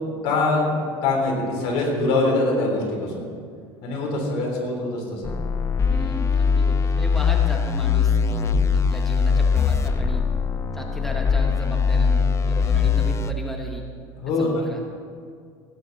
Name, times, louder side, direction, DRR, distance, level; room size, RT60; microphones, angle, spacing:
voice 1, 0.2-3.2 3.8-5.4 12.8-12.9 14.2-14.5, left 2 dB, 70° left, -1 dB, 3.8 m, -23 dB
sound 1, 5.2-13.3, left 5 dB, 30° left, 0.6 m, -21 dB
voice 2, 5.9-10.2 10.7-13.8 14.4-14.9, left 1 dB, 5° left, 1 dB, 1.2 m, -35 dB
17.0 x 9.5 x 4.1 m, 2.2 s
supercardioid pair, 110°, 10 cm